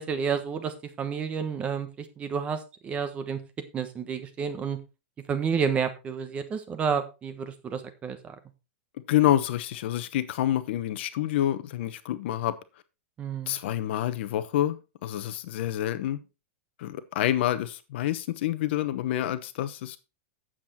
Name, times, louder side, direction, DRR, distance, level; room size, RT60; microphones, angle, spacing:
voice 1, 0.0-3.4 3.7-4.8 5.3-8.3 13.2-13.6, right 6 dB, 15° right, 1.2 m, -30 dB
voice 2, 9.1-12.6 13.5-14.8 15.0-16.2 16.8-20.0, left 12 dB, 55° left, 1.0 m, -27 dB
8.6 x 7.5 x 4.2 m
supercardioid pair, 160°, 7 cm